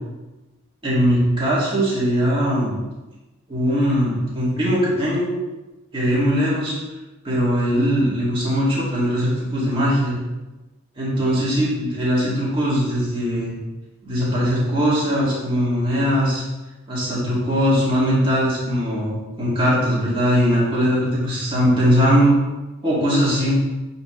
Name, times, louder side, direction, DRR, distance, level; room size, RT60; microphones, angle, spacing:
voice 1, 0.8-2.8 3.5-5.3 5.9-6.7 7.2-10.2 11.0-13.5 14.0-16.4 16.9-22.4 22.8-23.6, equal, 25° right, -8 dB, 2.1 m, -20 dB
7.8 x 4.2 x 3.2 m, 1.1 s
head